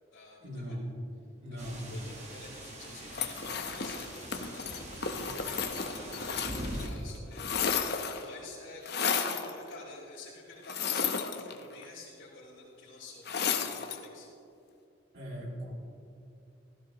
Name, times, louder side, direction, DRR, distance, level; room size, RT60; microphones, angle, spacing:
voice 1, 0.4-1.0 1.4-1.9 15.1-15.7, equal, 60° right, -3 dB, 2.7 m, -39 dB
voice 2, 1.5-14.3, left 2 dB, 85° left, -12 dB, 3.2 m, -50 dB
sound 1, 1.6-6.9, right 1 dB, 35° right, 1.5 m, -43 dB
sound 2, 3.1-6.9 7.1-8.3 8.8-9.5 10.6-11.8 13.2-14.0, left 6 dB, 55° left, 0.8 m, -33 dB
16.5 x 13.5 x 3.0 m, 2.6 s
head